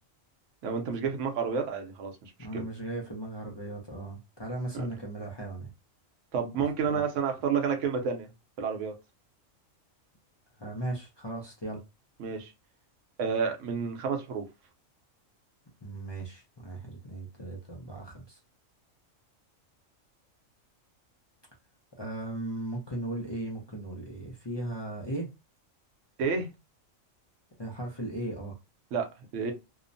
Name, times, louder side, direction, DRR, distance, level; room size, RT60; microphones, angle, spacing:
voice 1, 0.6-2.6 4.7-4.9 6.3-8.3 8.6-8.9 12.2-12.5 13.2-14.4 26.2-26.5 28.9-29.1 29.3-29.5, right 6 dB, 70° right, 1.0 m, -30 dB
voice 2, 2.4-5.7 6.9-7.0 10.6-11.8 15.8-18.4 22.0-25.3 27.6-28.6, right 1 dB, 45° left, 0.3 m, -37 dB
2.8 x 2.0 x 2.5 m
omnidirectional pair, 1.4 m